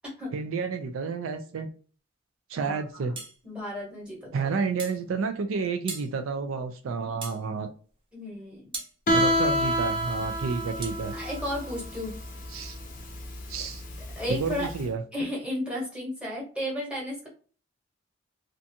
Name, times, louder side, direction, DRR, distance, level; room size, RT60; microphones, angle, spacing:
voice 1, 0.3-1.7 2.5-3.2 4.3-7.7 9.1-11.1 12.5-12.8 13.5-13.8 14.3-15.0, right 5 dB, 75° right, 7 dB, 0.4 m, -30 dB
sound 1, 3.2-3.4 4.8-5.0 5.9-6.1 7.2-7.4 8.7-9.0 10.8-11.0, right 3 dB, 25° right, 0.5 m, -37 dB
voice 2, 3.4-4.5 8.1-8.8 11.1-12.1 14.1-14.7 15.1-17.3, left 1 dB, 5° right, -5 dB, 1.1 m, -33 dB
Guitar, 9.1-14.8, equal, 40° left, 0.6 m, -28 dB
2.5 x 2.2 x 2.6 m, 0.40 s
head